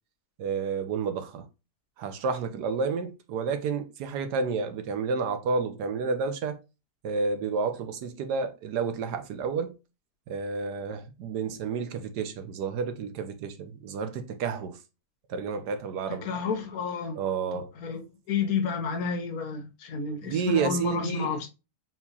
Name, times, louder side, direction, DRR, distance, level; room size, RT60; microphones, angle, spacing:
voice 1, 0.4-1.4 2.0-6.6 7.0-9.7 10.3-14.8 15.3-16.3 17.1-17.7 20.2-21.3, right 5 dB, 85° right, 1.3 m, -30 dB
voice 2, 16.2-17.2 17.8-18.0 18.3-21.5, left 5 dB, 70° left, 1.2 m, -30 dB
4.6 x 3.7 x 2.8 m
omnidirectional pair, 1.7 m